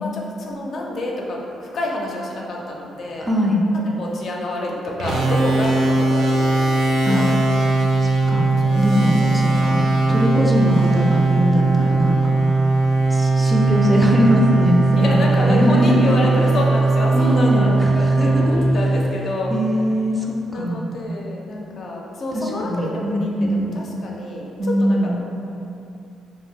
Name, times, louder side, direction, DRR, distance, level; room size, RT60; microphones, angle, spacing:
voice 1, 0.0-3.3 3.7-7.3 8.3-9.3 9.7-9.8 15.0-19.5 20.5-25.2, left 2 dB, 60° left, -2 dB, 0.4 m, -28 dB
voice 2, 3.2-3.6 7.0-7.2 8.0-8.5 8.7-12.4 13.1-16.1 17.1-18.6 19.5-20.8 22.3-23.9 24.6-25.2, equal, 10° right, -2 dB, 0.4 m, -21 dB
sound 1, 5.0-19.6, right 3 dB, 75° right, 0.4 m, -19 dB
2.5 x 2.0 x 3.6 m, 2.6 s
cardioid pair, 90°, 0 cm